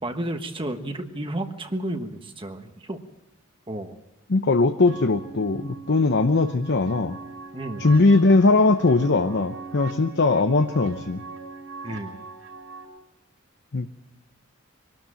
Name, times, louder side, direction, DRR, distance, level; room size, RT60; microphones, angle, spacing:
voice 1, 0.0-3.0 3.7-4.0 7.5-7.9 11.8-12.2, right 1 dB, 25° right, 6 dB, 1.3 m, -32 dB
voice 2, 4.3-7.2 7.8-11.2 13.7-13.9, left 3 dB, 55° left, 8 dB, 0.8 m, -20 dB
sound 1, 4.9-12.8, right 4 dB, 70° right, 5.8 m, -40 dB
23.5 x 13.0 x 9.0 m, 1.0 s
head